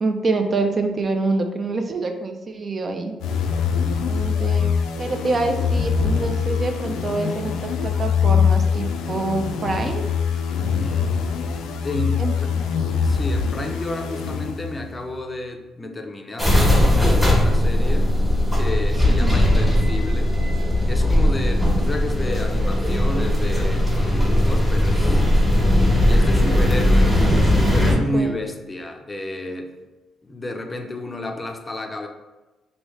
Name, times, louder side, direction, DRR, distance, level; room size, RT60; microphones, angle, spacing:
voice 1, 0.0-3.1 4.1-4.7 5.0-10.0 12.2-12.3 19.1-19.4 27.9-28.4, right 3 dB, 40° right, 5 dB, 0.3 m, -26 dB
sound 1, 3.2-15.0, left 6 dB, 90° left, 0.3 m, -23 dB
voice 2, 10.8-11.1 11.8-12.5 13.0-18.1 18.6-20.3 20.9-25.2 26.0-27.3 27.7-29.7 30.2-32.1, left 1 dB, 20° left, 4 dB, 0.4 m, -31 dB
sound 2, 16.4-27.9, left 1 dB, 5° right, 1.0 m, -18 dB
3.1 x 2.7 x 3.0 m, 1.1 s
cardioid pair, 90°, 0 cm